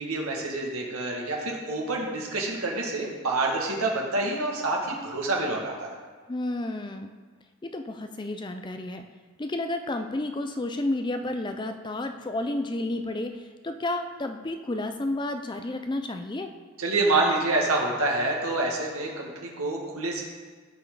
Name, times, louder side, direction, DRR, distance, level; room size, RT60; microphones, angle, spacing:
voice 1, 0.0-5.9 16.8-20.2, right 2 dB, 85° right, -1 dB, 2.0 m, -27 dB
voice 2, 6.3-7.1 7.6-9.0 9.4-16.5, left 2 dB, 20° left, 7 dB, 0.4 m, -31 dB
15.5 x 5.5 x 4.0 m, 1.5 s
head